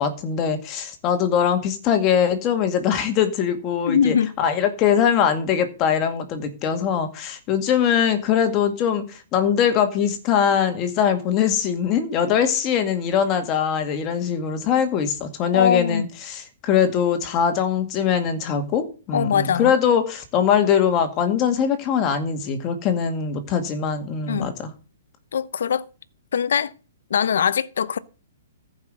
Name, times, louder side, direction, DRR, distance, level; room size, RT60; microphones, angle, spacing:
voice 1, 0.0-24.7, left 8 dB, 30° left, 2.1 m, -22 dB
voice 2, 3.9-4.3 15.5-16.1 19.1-19.7 24.3-24.5 25.3-25.8 26.3-26.7 27.1-28.0, left 7 dB, 75° left, 0.8 m, -21 dB
14.5 x 5.8 x 6.7 m
hypercardioid pair, 150°, 0 cm